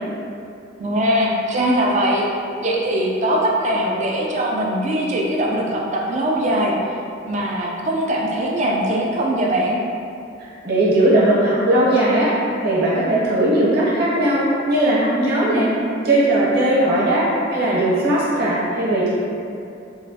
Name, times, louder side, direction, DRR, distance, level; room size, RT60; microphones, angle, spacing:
voice 1, 0.8-2.3 2.6-6.7 7.3-9.8, right 1 dB, 35° right, -2 dB, 0.3 m, -21 dB
voice 2, 10.4-12.3 12.6-15.7 16.0-19.1, right 1 dB, 55° right, -7 dB, 0.8 m, -18 dB
3.0 x 2.2 x 2.7 m, 2.6 s
head